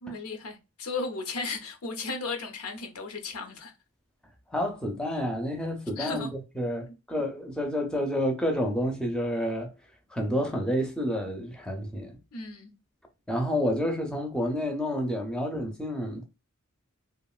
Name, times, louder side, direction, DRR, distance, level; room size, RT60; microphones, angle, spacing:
voice 1, 0.0-3.7 6.0-6.3 12.3-12.7, left 3 dB, 80° left, 0.7 m, -35 dB
voice 2, 4.5-9.7 10.1-12.1 13.3-16.2, equal, 5° left, 0.5 m, -29 dB
2.8 x 2.4 x 2.3 m
head